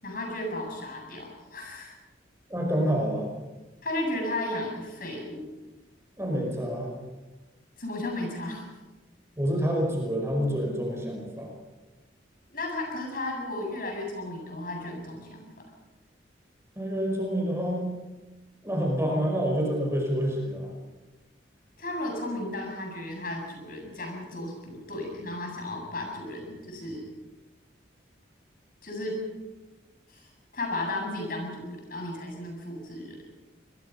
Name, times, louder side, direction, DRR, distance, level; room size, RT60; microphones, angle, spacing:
voice 1, 0.0-1.9 3.8-5.5 7.8-8.6 12.5-15.5 21.8-27.1 28.8-29.2 30.1-33.2, left 1 dB, 50° left, 1 dB, 7.7 m, -34 dB
voice 2, 2.5-3.3 6.2-6.9 9.4-11.5 16.7-17.9 18.6-20.7, equal, 15° right, 0 dB, 5.3 m, -27 dB
26.0 x 21.5 x 5.7 m, 1.2 s
head